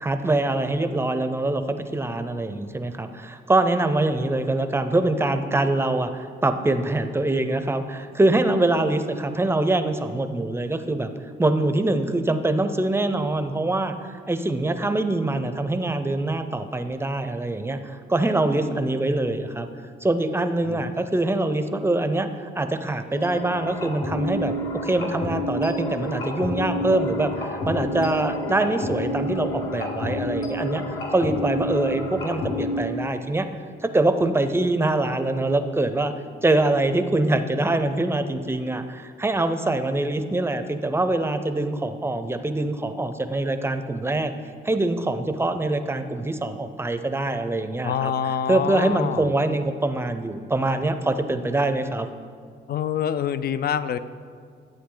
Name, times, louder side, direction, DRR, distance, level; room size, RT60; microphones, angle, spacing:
voice 1, 0.0-11.1 11.4-19.7 20.0-30.8 31.1-33.5 33.8-36.1 36.4-44.3 44.6-48.1 48.5-52.1, right 2 dB, 10° right, 9 dB, 0.6 m, -24 dB
sound 1, 23.1-32.8, left 1 dB, 75° left, 2.0 m, -29 dB
voice 2, 47.8-49.3 52.7-54.0, left 8 dB, 50° left, 13 dB, 0.5 m, -26 dB
11.5 x 7.9 x 3.9 m, 2.1 s
cardioid pair, 90°, 20 cm